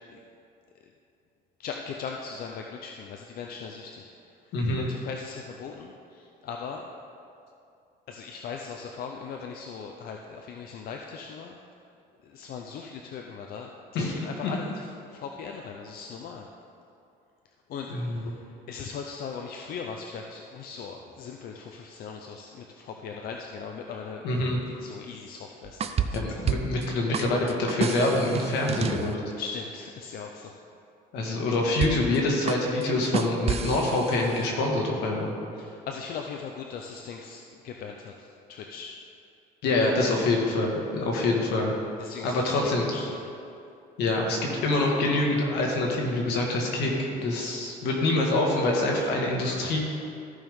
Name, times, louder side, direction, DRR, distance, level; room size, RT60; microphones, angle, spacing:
voice 1, 1.6-4.1 4.7-6.8 8.1-11.5 12.3-14.9 15.1-16.5 17.7-18.3 18.7-24.2 24.8-26.4 29.4-30.5 35.6-39.0 40.2-40.3 42.0-42.6 42.9-43.0, left 6 dB, 60° left, 2 dB, 0.6 m, -39 dB
voice 2, 4.5-4.9 13.9-14.1 14.4-14.5 17.9-18.3 24.2-24.6 26.1-29.2 31.1-35.3 39.6-41.7 42.2-42.9 44.0-46.9 47.2-49.8, left 2 dB, 85° left, -1 dB, 1.8 m, -25 dB
sound 1, 25.6-26.9 27.1-29.1 31.8-32.2 32.5-34.5, right 7 dB, 35° right, 0.5 m, -30 dB
14.0 x 5.4 x 3.6 m, 2.6 s
cardioid pair, 110°, 17 cm